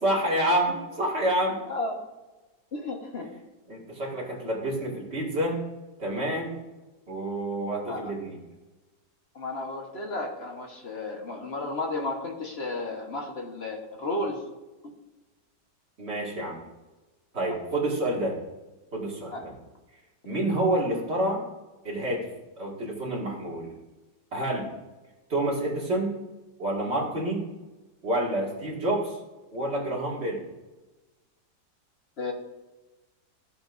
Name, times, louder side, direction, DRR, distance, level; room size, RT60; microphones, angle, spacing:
voice 1, 0.0-1.6 3.7-5.6 6.0-6.5 7.1-8.4 16.0-16.6 17.3-18.4 18.9-19.5 20.2-21.4 21.8-22.3 22.6-23.7 24.3-24.7 25.3-26.2 26.6-27.5 28.0-29.2 29.5-30.4, right 1 dB, 35° right, -3 dB, 2.3 m, -28 dB
voice 2, 1.7-2.0 2.7-3.3 7.9-8.1 9.3-14.4 14.8-14.9 17.5-17.6 19.3-19.4 32.2-32.3, left 2 dB, 40° left, 2 dB, 1.3 m, -33 dB
14.0 x 7.7 x 2.6 m, 1.1 s
omnidirectional pair, 1.9 m